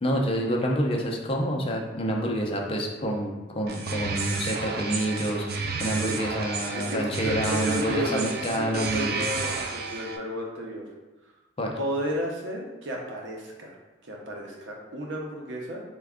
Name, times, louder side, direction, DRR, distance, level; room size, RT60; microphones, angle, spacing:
voice 1, 0.0-9.2 11.6-11.8, equal, 30° left, 0 dB, 0.4 m, -28 dB
sound 1, 3.7-10.2, right 4 dB, 55° right, 0.3 m, -31 dB
voice 2, 6.7-10.8 11.8-13.8 14.0-15.8, equal, 85° right, -1 dB, 0.7 m, -33 dB
3.4 x 2.2 x 3.5 m, 1.1 s
head